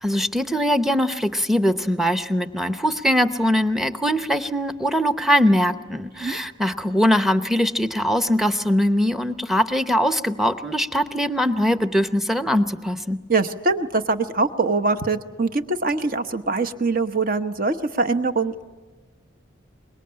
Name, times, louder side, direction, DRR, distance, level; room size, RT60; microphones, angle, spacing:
voice 1, 0.0-13.2, equal, ahead, 10 dB, 0.8 m, -21 dB
voice 2, 13.3-18.6, right 3 dB, 45° right, 9 dB, 1.0 m, -23 dB
24.5 x 21.5 x 8.7 m, 1.3 s
head